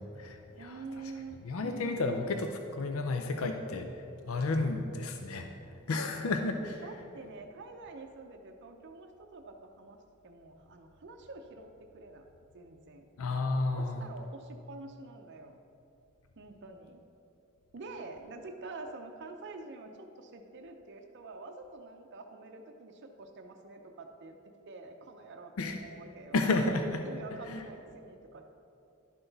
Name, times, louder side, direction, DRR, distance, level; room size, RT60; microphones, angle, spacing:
voice 1, 0.0-0.7 1.4-2.5 2.8-3.9 4.3-5.5 5.9-6.8 13.2-14.1 25.6-25.8 26.3-27.0 27.5-27.6, left 3 dB, 75° left, 5 dB, 0.5 m, -31 dB
voice 2, 0.6-1.4 1.8-2.1 5.9-6.1 6.8-12.3 12.5-13.0 13.7-15.6 16.4-17.0 17.7-24.4 24.7-26.4 27.0-28.5, right 3 dB, 55° right, 4 dB, 0.6 m, -47 dB
11.0 x 5.9 x 3.9 m, 2.7 s
head